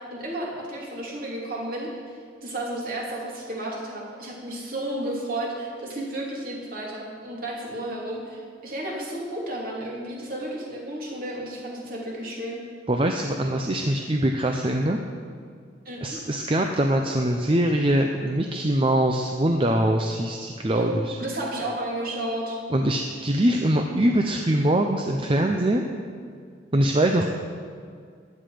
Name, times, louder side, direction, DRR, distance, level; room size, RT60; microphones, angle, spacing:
voice 1, 0.0-12.6 15.8-16.2 20.7-20.9 21.2-22.6, right 1 dB, 50° right, -3 dB, 3.1 m, -32 dB
voice 2, 12.9-15.0 16.0-21.0 22.7-25.9 26.7-27.2, right 1 dB, 30° right, 3 dB, 0.6 m, -23 dB
15.5 x 10.5 x 5.1 m, 2.1 s
head